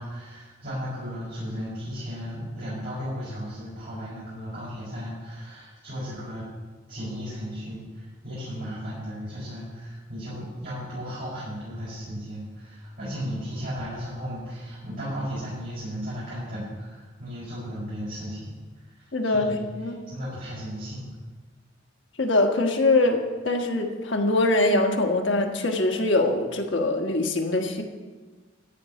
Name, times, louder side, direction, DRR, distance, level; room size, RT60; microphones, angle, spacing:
voice 1, 0.0-6.4 6.9-18.5 19.0-19.7 20.1-21.1, equal, 55° right, -10 dB, 5.0 m, -35 dB
voice 2, 19.1-19.5 19.8-20.0 22.2-27.8, left 2 dB, 70° left, 3 dB, 1.4 m, -23 dB
13.5 x 5.5 x 9.0 m, 1.3 s
head